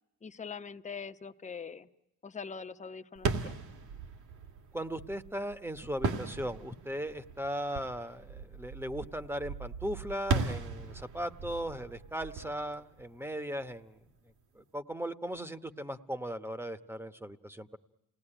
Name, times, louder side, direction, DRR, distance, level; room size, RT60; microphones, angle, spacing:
voice 1, 0.2-1.9 2.2-3.5, left 5 dB, 25° left, 8 dB, 0.9 m, -43 dB
sound 1, 3.1-13.7, right 4 dB, 80° right, 2.4 m, -38 dB
voice 2, 4.7-14.0 14.5-17.8, equal, 10° right, 12 dB, 1.0 m, -38 dB
28.5 x 19.0 x 10.0 m, 0.99 s
cardioid pair, 125°, 30 cm